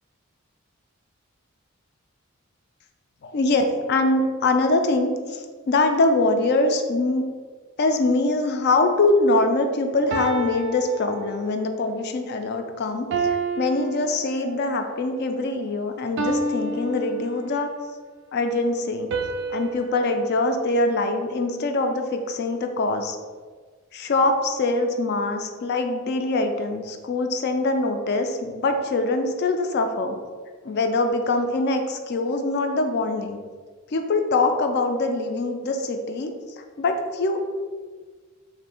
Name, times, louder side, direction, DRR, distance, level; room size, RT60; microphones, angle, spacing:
voice 1, 3.2-7.2 7.8-17.7 18.3-19.1 19.5-23.2 23.9-30.2 30.6-33.4 33.9-36.3 36.6-37.4, left 2 dB, 50° left, 6 dB, 0.3 m, -23 dB
sound 1, 8.6-9.0 10.1-11.7 13.1-14.8 16.2-17.8 19.1-21.5, right 2 dB, 55° right, 0.3 m, -30 dB
2.7 x 2.5 x 4.2 m, 1.5 s
head